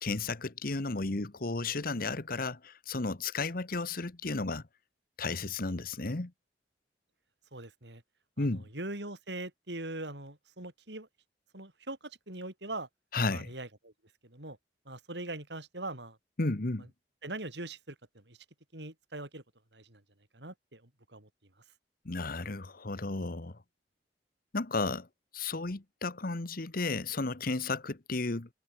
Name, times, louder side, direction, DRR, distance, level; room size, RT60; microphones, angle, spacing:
voice 1, 0.0-4.6 5.2-6.3 8.4-8.6 13.1-13.5 16.4-16.9 22.0-23.5 24.5-25.1 25.3-28.5, left 3 dB, 55° left, 1.3 m, -33 dB
voice 2, 7.5-8.0 8.4-8.5 8.7-11.1 11.5-12.9 13.3-13.9 14.2-14.6 14.9-16.2 17.2-18.0 18.3-18.4 18.7-19.4 19.7-20.0 20.3-20.8 21.1-21.3, right 2 dB, 75° right, 5.5 m, -41 dB
head